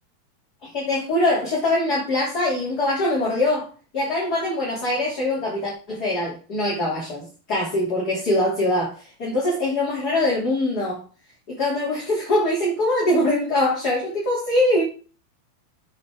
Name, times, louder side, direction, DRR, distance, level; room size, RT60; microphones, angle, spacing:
voice 1, 0.6-3.7 3.9-11.0 11.5-14.8, left 1 dB, 30° left, -5 dB, 3.5 m, -23 dB
8.9 x 8.8 x 3.8 m, 0.35 s
omnidirectional pair, 4.0 m